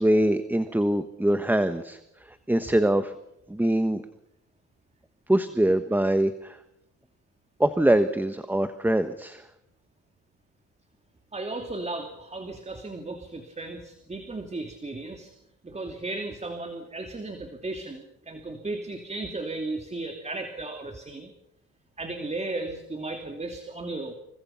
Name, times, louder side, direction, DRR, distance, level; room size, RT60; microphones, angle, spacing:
voice 1, 0.0-2.0 2.5-3.1 3.5-4.0 5.3-6.6 7.6-9.4, right 1 dB, 5° right, 10 dB, 1.3 m, -23 dB
voice 2, 11.3-15.3 15.6-21.3 22.0-24.1, right 2 dB, 20° right, 5 dB, 2.8 m, -35 dB
28.5 x 24.0 x 5.8 m, 0.81 s
cardioid pair, 90°, 30 cm